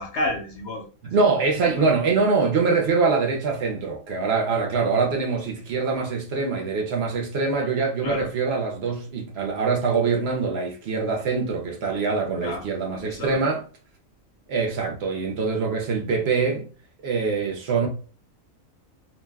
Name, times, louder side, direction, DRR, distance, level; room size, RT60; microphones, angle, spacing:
voice 1, 0.0-1.1 1.6-1.9 8.0-8.3 12.4-12.7 12.9-13.4, left 2 dB, 65° left, 0.7 m, -31 dB
voice 2, 1.0-13.6 14.5-16.7 17.0-17.9, right 4 dB, 60° right, 0.7 m, -24 dB
2.5 x 2.1 x 3.4 m
omnidirectional pair, 1.6 m